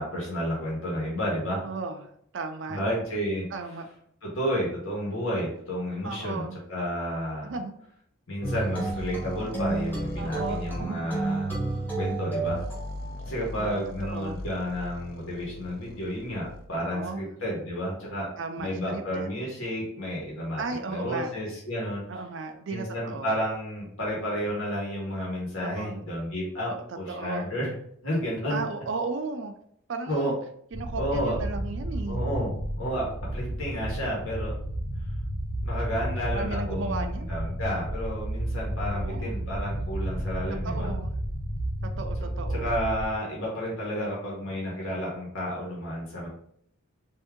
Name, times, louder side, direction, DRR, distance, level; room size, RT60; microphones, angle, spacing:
voice 1, 0.0-1.6 2.7-3.4 4.2-7.5 8.3-11.5 12.0-12.6 13.2-18.3 18.6-20.6 20.9-22.0 22.7-26.7 27.0-27.7 28.0-28.6 30.1-30.3 31.0-31.4 32.1-32.5 32.8-33.1 33.3-34.5 35.6-40.9 42.6-46.3, equal, 70° left, -4 dB, 1.2 m, -31 dB
voice 2, 1.5-2.8 3.5-3.9 6.0-6.6 7.4-7.8 10.2-11.1 13.5-14.4 16.9-17.2 18.4-19.3 20.6-21.3 22.1-23.3 25.6-26.1 26.6-27.5 28.5-29.5 29.9-30.4 30.7-32.2 36.3-37.3 38.9-39.4 40.6-41.1 42.0-42.7, right 3 dB, 60° right, 6 dB, 0.4 m, -35 dB
sound 1, 8.4-13.3, right 3 dB, 10° left, 0.9 m, -31 dB
sound 2, 8.9-10.9 12.3-16.7, left 2 dB, 45° left, 0.3 m, -40 dB
sound 3, 30.7-43.1, right 1 dB, 90° left, 1.4 m, -32 dB
3.5 x 2.7 x 3.6 m, 0.67 s
head